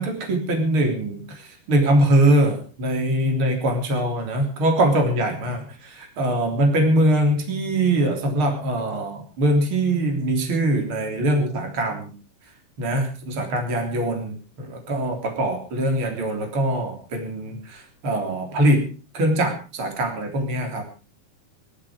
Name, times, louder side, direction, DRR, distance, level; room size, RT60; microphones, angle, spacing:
voice 1, 0.0-12.1 12.8-18.9 19.1-20.8, right 1 dB, 35° right, 4 dB, 3.9 m, -22 dB
19.5 x 12.5 x 5.1 m, 0.36 s
omnidirectional pair, 4.3 m